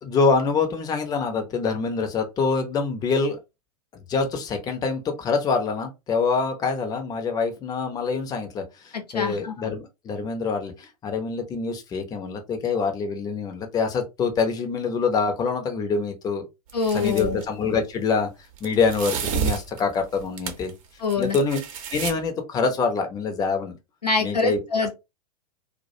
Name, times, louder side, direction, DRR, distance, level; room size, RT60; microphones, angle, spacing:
voice 1, 0.0-3.4 4.1-16.4 16.9-18.3 18.6-20.7 21.2-21.6 21.9-23.7 24.2-24.6, left 4 dB, 20° left, 0.6 m, -25 dB
voice 2, 9.1-9.5 16.7-17.4 21.0-21.4 24.0-24.9, left 4 dB, 90° left, 0.7 m, -24 dB
sound 1, 16.7-17.4 18.5-20.7 21.0-22.1, right 7 dB, 55° right, 0.7 m, -30 dB
2.3 x 2.1 x 2.6 m
figure-of-eight pair, 100°, 20 cm